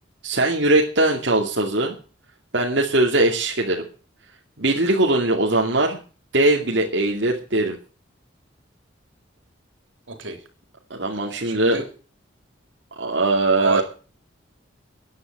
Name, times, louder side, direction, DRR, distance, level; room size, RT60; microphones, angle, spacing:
voice 1, 0.2-1.9 2.5-3.8 4.6-6.0 6.3-7.8 10.9-11.8 13.0-13.8, right 2 dB, 65° right, -1 dB, 2.5 m, -20 dB
voice 2, 10.1-10.4 11.4-11.9 13.6-13.8, right 3 dB, 80° right, 6 dB, 3.6 m, -27 dB
14.5 x 9.9 x 7.5 m, 0.37 s
head